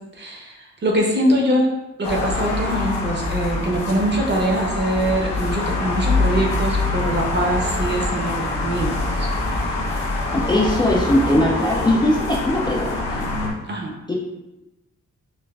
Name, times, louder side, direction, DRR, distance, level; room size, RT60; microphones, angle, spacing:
voice 1, 0.2-1.7 2.0-9.3 13.7-13.9, right 1 dB, 35° right, -1 dB, 0.7 m, -23 dB
sound 1, 2.0-13.5, left 2 dB, 80° left, 0.8 m, -24 dB
voice 2, 10.3-13.3 14.1-14.2, left 1 dB, 15° left, -4 dB, 0.3 m, -20 dB
5.8 x 2.4 x 2.3 m, 0.99 s
wide cardioid pair, 160°, 30 cm